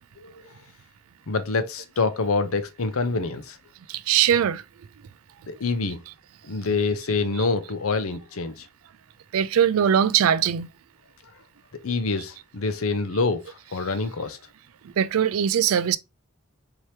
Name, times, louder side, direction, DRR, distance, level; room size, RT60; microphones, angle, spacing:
voice 1, 0.2-0.5 1.3-3.6 5.5-6.0 6.5-8.7 11.8-14.4, left 3 dB, 75° left, 0.7 m, -26 dB
voice 2, 3.9-4.6 9.3-10.7 14.8-16.0, right 9 dB, 75° right, 0.4 m, -21 dB
4.4 x 2.9 x 3.2 m
head